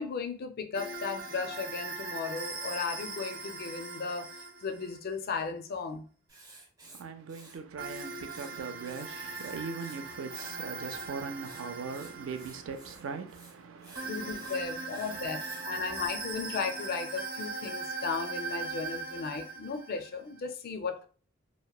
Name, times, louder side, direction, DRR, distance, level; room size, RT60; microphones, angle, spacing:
voice 1, 0.0-6.1 14.0-21.0, left 5 dB, 50° left, 0.4 m, -36 dB
sound 1, 0.7-5.0 7.8-12.9 13.9-20.4, right 3 dB, 85° right, 1.0 m, -40 dB
Writing, 6.3-8.5 8.8-10.0 10.3-15.7, right 3 dB, 20° right, 0.6 m, -53 dB
voice 2, 6.8-16.0, right 5 dB, 70° right, 0.4 m, -41 dB
2.9 x 2.1 x 2.3 m
head